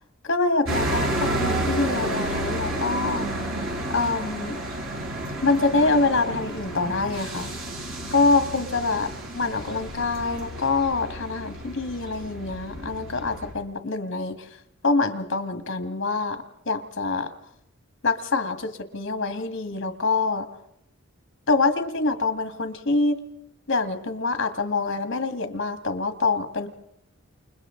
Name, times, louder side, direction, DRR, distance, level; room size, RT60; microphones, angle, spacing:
voice 1, 0.2-3.3 3.9-4.6 5.4-7.5 8.1-14.5 14.8-17.3 18.0-20.5 21.5-23.2 23.7-26.7, left 3 dB, 60° left, 7 dB, 2.1 m, -25 dB
sound 1, 0.6-13.5, right 1 dB, 70° right, 6.9 m, -31 dB
29.5 x 29.0 x 3.9 m, 0.78 s
head